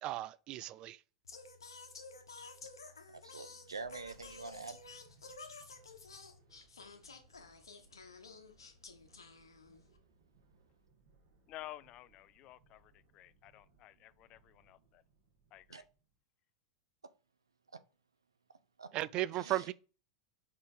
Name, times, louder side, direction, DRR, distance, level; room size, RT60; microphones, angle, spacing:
voice 1, 0.0-1.0 18.9-19.7, right 15 dB, 40° right, 0.4 m, -36 dB
Singing, 1.2-10.0, left 4 dB, 80° left, 1.2 m, -52 dB
sound 1, 3.0-16.2, right 3 dB, 60° right, 2.0 m, -69 dB
voice 2, 3.1-4.8 15.7-15.8 18.8-18.9 19.4-19.6, right 4 dB, 80° right, 0.6 m, -45 dB
voice 3, 11.5-15.0 15.5-15.8, left 15 dB, 40° left, 0.4 m, -52 dB
5.2 x 4.2 x 5.0 m
figure-of-eight pair, 90°, 2 cm